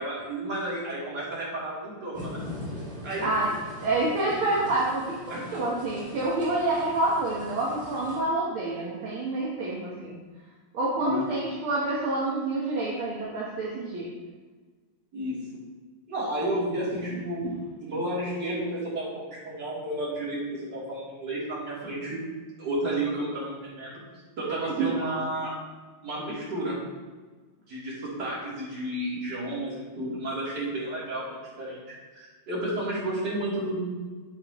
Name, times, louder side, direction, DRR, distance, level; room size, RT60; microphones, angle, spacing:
voice 1, 0.0-2.4 3.0-3.3 5.3-5.5 11.0-11.2 15.1-15.4 16.1-17.5 17.8-22.2 22.6-24.0 24.4-25.5 26.0-26.8 27.7-33.8, right 1 dB, 50° right, -8 dB, 3.8 m, -32 dB
sound 1, 2.1-8.2, left 1 dB, 5° left, 2.3 m, -42 dB
voice 2, 3.2-3.5 3.8-10.2 10.7-14.1 17.4-17.6 24.4-25.0, right 2 dB, 75° right, -6 dB, 2.1 m, -28 dB
9.4 x 8.4 x 3.1 m, 1.4 s
omnidirectional pair, 2.3 m